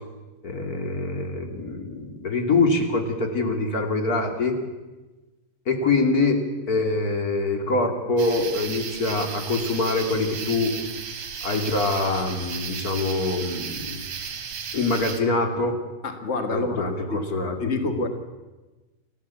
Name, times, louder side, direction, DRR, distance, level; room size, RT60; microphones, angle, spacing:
voice 1, 0.4-4.5 5.7-10.7 11.4-14.0 14.7-15.8 16.5-17.7, left 3 dB, 30° left, 5 dB, 2.5 m, -24 dB
sound 1, 8.2-15.2, right 6 dB, 55° right, 3.0 m, -35 dB
voice 2, 16.0-17.2 17.6-18.1, left 3 dB, 65° left, 7 dB, 0.6 m, -28 dB
29.5 x 13.5 x 8.4 m, 1.2 s
omnidirectional pair, 4.1 m